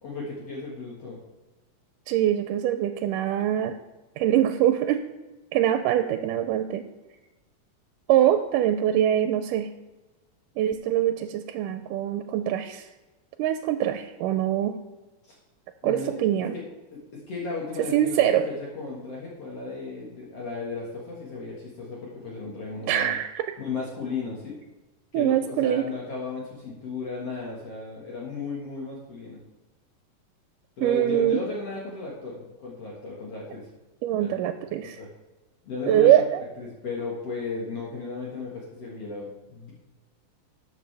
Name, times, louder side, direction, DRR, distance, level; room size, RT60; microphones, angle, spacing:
voice 1, 0.0-1.2 15.3-15.4 15.8-16.3 16.9-17.0 17.3-23.1 23.6-24.6 25.1-29.4 30.8-33.7 34.2-34.3 35.0-35.1 35.6-36.1 36.6-39.7, left 3 dB, 55° left, -4 dB, 2.4 m, -35 dB
voice 2, 2.1-3.8 4.2-5.0 5.5-6.8 8.1-9.7 10.6-12.9 13.4-14.7 15.8-16.6 17.9-18.5 22.9-23.4 25.1-25.9 30.8-31.4 34.0-35.0 35.9-36.4, right 11 dB, 90° right, 8 dB, 2.2 m, -23 dB
13.0 x 7.7 x 3.4 m, 1.1 s
omnidirectional pair, 3.7 m